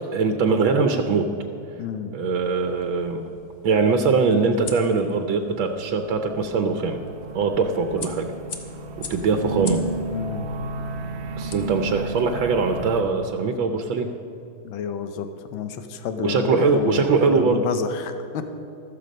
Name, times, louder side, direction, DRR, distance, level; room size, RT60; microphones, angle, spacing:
voice 1, 0.1-1.3 2.1-3.2 3.6-7.0 7.3-8.3 9.1-9.8 11.4-14.1 16.2-17.6, right 4 dB, 75° right, 5 dB, 1.6 m, -22 dB
voice 2, 1.8-2.1 10.1-10.5 14.6-15.3 15.5-18.4, left 6 dB, 80° left, 8 dB, 1.7 m, -29 dB
sound 1, 2.4-12.3, left 5 dB, 55° left, 1.6 m, -44 dB
sound 2, 5.9-13.0, right 3 dB, 55° right, 0.7 m, -32 dB
14.0 x 13.5 x 5.2 m, 2.8 s
omnidirectional pair, 2.2 m